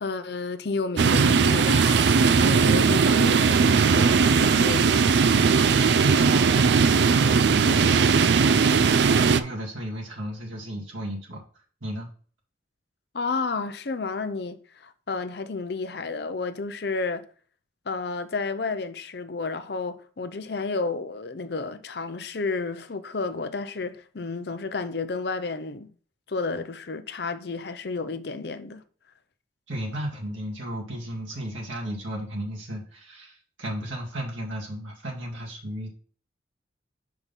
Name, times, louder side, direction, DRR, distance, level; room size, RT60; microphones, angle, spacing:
voice 1, 0.0-5.1 13.1-17.3 17.9-25.9 26.3-28.8, left 4 dB, 60° left, 0.6 m, -31 dB
sound 1, 1.0-9.4, right 5 dB, 65° right, 0.4 m, -19 dB
voice 2, 5.6-11.4 11.8-12.1 29.7-35.9, right 1 dB, 90° right, 2.1 m, -34 dB
5.7 x 4.7 x 5.3 m
head